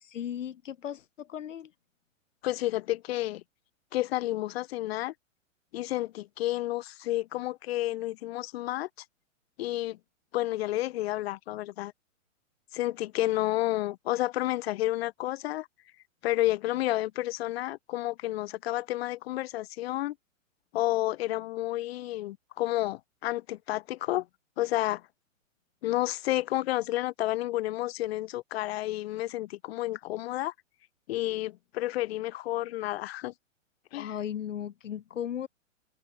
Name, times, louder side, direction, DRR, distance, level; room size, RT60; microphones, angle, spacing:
voice 1, 0.0-1.7 34.0-35.5, left 9 dB, 65° left, 2.4 m, -36 dB
voice 2, 2.4-3.4 3.9-5.1 5.7-8.9 9.6-10.0 10.3-11.9 12.7-15.7 16.2-20.1 20.7-24.3 24.6-25.0 25.8-30.5 31.1-33.3 33.9-34.1, left 16 dB, 50° left, 1.5 m, -30 dB
open air
hypercardioid pair, 120°, 40 cm